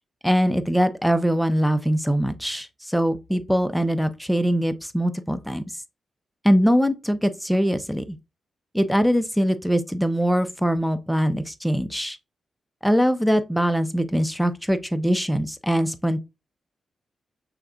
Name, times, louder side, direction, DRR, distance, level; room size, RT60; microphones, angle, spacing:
voice 1, 0.2-5.6 6.4-8.2 8.7-12.2 12.8-16.2, equal, ahead, 0.6 m, -22 dB
6.4 x 3.4 x 2.4 m
cardioid pair, 95°, 0 cm